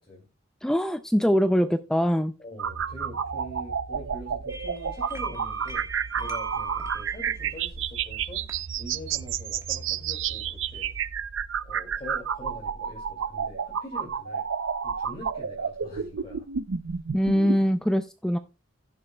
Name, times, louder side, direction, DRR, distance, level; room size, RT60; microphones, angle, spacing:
voice 1, 0.6-2.3 17.1-18.4, equal, 5° left, 9 dB, 0.3 m, -23 dB
voice 2, 2.4-5.9 6.1-8.4 8.8-10.9 11.6-14.4 14.8-16.5, equal, 30° left, 0 dB, 2.4 m, -43 dB
sound 1, 2.6-17.6, right 7 dB, 80° right, 0.6 m, -31 dB
sound 2, 4.5-11.1, right 1 dB, 15° right, 1.3 m, -45 dB
16.0 x 6.9 x 2.2 m, 0.29 s
head